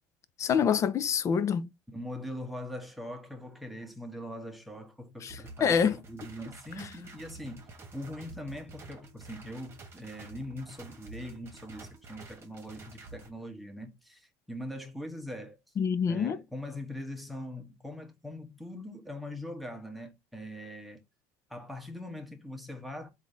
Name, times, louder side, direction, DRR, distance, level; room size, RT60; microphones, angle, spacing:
voice 1, 0.4-1.7 5.2-6.0 15.8-16.4, left 7 dB, 35° left, 0.5 m, -26 dB
voice 2, 1.9-15.6 16.1-21.0 21.5-23.1, left 1 dB, ahead, 1.1 m, -42 dB
sound 1, 5.3-13.3, right 3 dB, 30° right, 1.3 m, -49 dB
3.8 x 2.7 x 4.7 m
cardioid pair, 120°, 9 cm